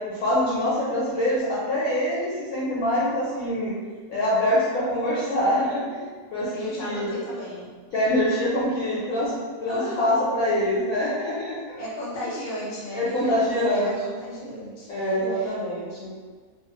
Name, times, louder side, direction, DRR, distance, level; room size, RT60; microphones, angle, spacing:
voice 1, 0.1-3.8 4.1-6.0 6.3-6.5 6.8-7.1 7.9-9.3 9.6-11.6 12.9-14.0 14.9-16.1, left 1 dB, 70° left, -7 dB, 0.9 m, -24 dB
voice 2, 6.5-7.7 9.7-10.2 11.8-15.5, left 1 dB, 35° left, -8 dB, 0.9 m, -34 dB
2.5 x 2.4 x 2.8 m, 1.5 s
omnidirectional pair, 1.7 m